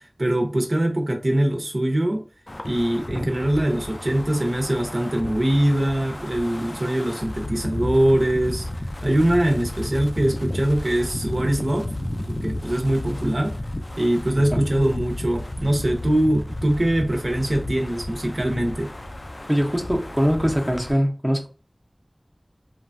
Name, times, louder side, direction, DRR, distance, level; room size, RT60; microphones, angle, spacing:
voice 1, 0.2-2.2 2.6-8.7 9.0-11.9 12.2-13.5 14.0-18.9, right 1 dB, 70° right, 0.7 m, -22 dB
Wind, 2.5-20.9, left 1 dB, 55° left, 0.3 m, -33 dB
voice 2, 19.5-21.5, equal, 15° right, 0.6 m, -22 dB
3.1 x 2.2 x 2.5 m
wide cardioid pair, 40°, 0 cm